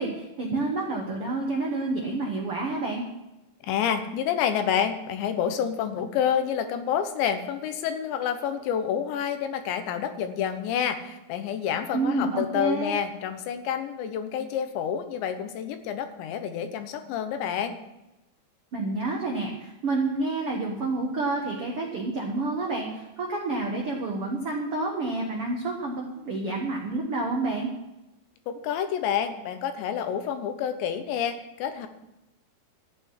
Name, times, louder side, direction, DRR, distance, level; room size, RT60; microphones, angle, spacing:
voice 1, 0.0-3.0 11.9-13.0 18.7-27.7, right 3 dB, 75° right, 0 dB, 1.3 m, -29 dB
voice 2, 3.6-17.8 28.5-31.9, left 8 dB, 80° left, 8 dB, 3.3 m, -28 dB
13.5 x 5.7 x 9.6 m, 0.95 s
omnidirectional pair, 5.1 m